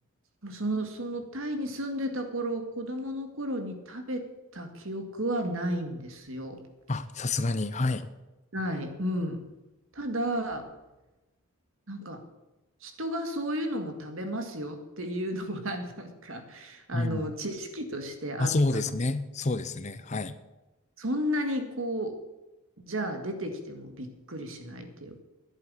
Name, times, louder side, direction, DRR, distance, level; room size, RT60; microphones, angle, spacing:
voice 1, 0.4-6.6 8.5-9.4 9.9-10.7 11.9-12.2 12.8-18.9 21.0-22.2 22.8-25.2, equal, 65° right, 6 dB, 1.9 m, -33 dB
voice 2, 6.9-8.1 16.9-17.3 18.4-20.4, left 2 dB, 30° left, 13 dB, 0.6 m, -28 dB
11.0 x 8.3 x 10.0 m, 1.1 s
head